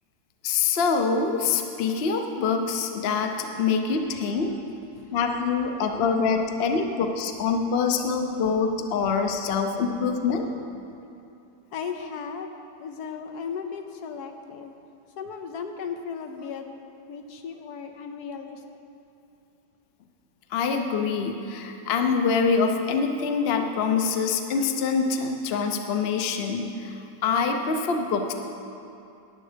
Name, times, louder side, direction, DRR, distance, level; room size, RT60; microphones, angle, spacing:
voice 1, 0.4-4.6 5.1-10.5 20.5-28.3, left 5 dB, 50° left, 5 dB, 0.8 m, -25 dB
voice 2, 11.7-14.7 15.2-16.7 17.1-18.6, left 6 dB, 75° left, 6 dB, 1.2 m, -36 dB
11.0 x 9.0 x 5.0 m, 2.7 s
omnidirectional pair, 1.8 m